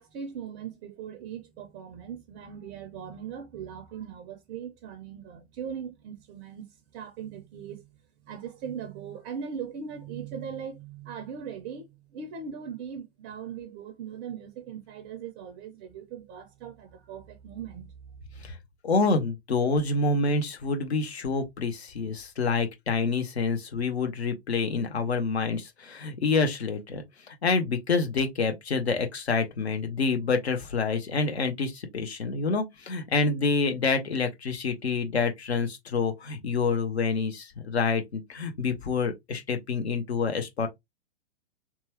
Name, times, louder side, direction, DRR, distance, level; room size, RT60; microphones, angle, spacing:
voice 1, 0.0-6.7 6.9-7.9 8.2-17.9, right 7 dB, 25° right, 0.5 m, -39 dB
voice 2, 18.8-40.7, left 4 dB, 75° left, 0.9 m, -27 dB
2.9 x 2.3 x 2.9 m
figure-of-eight pair, 105°, 32 cm